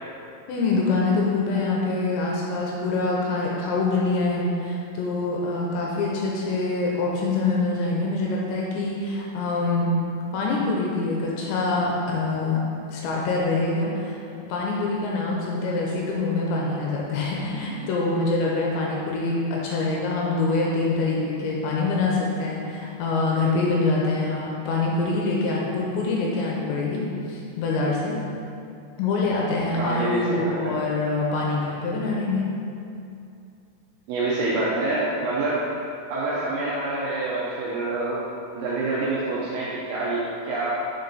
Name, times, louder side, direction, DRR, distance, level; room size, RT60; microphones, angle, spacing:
voice 1, 0.5-10.0 10.3-14.2 14.5-28.2 29.0-32.5, left 3 dB, 80° left, -3 dB, 2.9 m, -25 dB
voice 2, 29.8-30.7 34.1-35.6 36.1-38.3 38.5-40.7, right 2 dB, 85° right, -6 dB, 2.2 m, -26 dB
6.7 x 4.4 x 4.0 m, 2.6 s
omnidirectional pair, 5.4 m